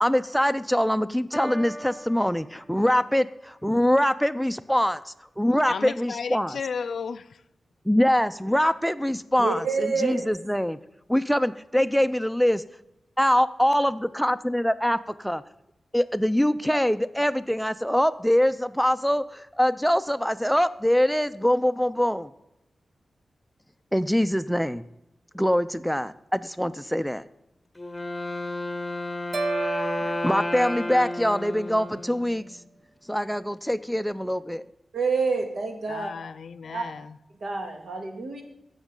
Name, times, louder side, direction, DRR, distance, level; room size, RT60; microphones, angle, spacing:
voice 1, 0.0-6.6 7.9-10.8 11.1-12.6 13.2-15.4 15.9-22.3 23.9-24.8 25.3-27.2 30.0-32.5 33.1-34.6, equal, ahead, 0.4 m, -24 dB
Piano, 1.3-3.3, equal, 20° right, 1.1 m, -40 dB
voice 2, 5.7-7.4 35.9-37.2, left 6 dB, 80° left, 0.4 m, -34 dB
voice 3, 9.4-10.3 34.9-36.1 36.7-36.8 37.4-38.4, right 4 dB, 85° right, 1.8 m, -27 dB
Wind instrument woodwind instrument, 27.7-32.6, left 2 dB, 20° left, 0.9 m, -32 dB
sound 1, 29.3-31.6, right 3 dB, 65° right, 0.8 m, -32 dB
16.0 x 6.4 x 3.8 m
wide cardioid pair, 80°, 0 cm